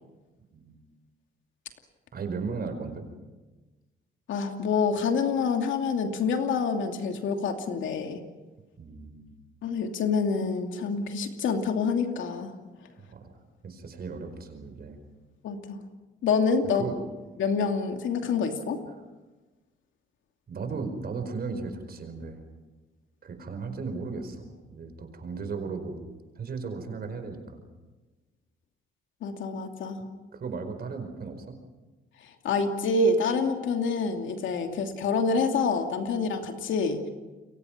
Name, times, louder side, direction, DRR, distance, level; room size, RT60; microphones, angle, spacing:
voice 1, 2.1-3.1 8.8-9.4 13.0-13.2 13.6-15.0 16.7-17.0 18.9-19.0 20.5-22.4 23.2-26.0 26.3-27.7 30.3-31.6, right 4 dB, 50° right, 7 dB, 4.9 m, -36 dB
voice 2, 4.3-8.2 9.6-12.5 15.4-15.8 16.2-16.8 17.4-18.8 29.2-30.1 32.4-37.1, left 4 dB, 75° left, 5 dB, 2.7 m, -27 dB
29.5 x 23.5 x 6.0 m, 1.2 s
cardioid pair, 90°, 20 cm